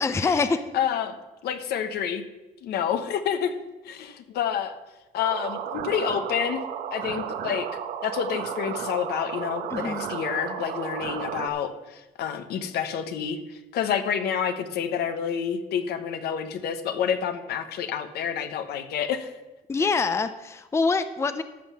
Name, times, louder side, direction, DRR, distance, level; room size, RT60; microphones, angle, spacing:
voice 1, 0.0-0.6 9.7-10.1 19.7-21.4, left 4 dB, 15° left, 11 dB, 0.5 m, -25 dB
voice 2, 0.7-1.2 1.4-2.2 2.6-3.6 3.8-4.8 5.1-6.6 6.9-7.7 8.0-19.3 19.8-19.9, left 8 dB, 70° left, 8 dB, 1.1 m, -28 dB
sound 1, 5.2-11.5, right 8 dB, 75° right, 1.1 m, -33 dB
14.0 x 5.7 x 6.1 m, 1.0 s
cardioid pair, 110°, 17 cm